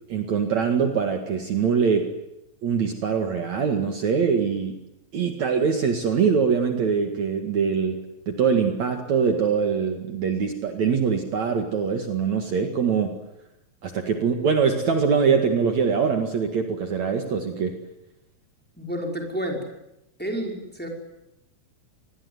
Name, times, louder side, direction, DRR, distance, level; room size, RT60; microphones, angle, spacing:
voice 1, 0.1-2.1 2.6-4.8 5.1-8.0 8.3-13.1 13.8-17.8, right 6 dB, 55° right, 5 dB, 3.1 m, -23 dB
voice 2, 18.8-19.6 20.2-20.9, equal, 5° left, 1 dB, 5.1 m, -30 dB
27.0 x 21.0 x 9.7 m, 0.88 s
omnidirectional pair, 4.0 m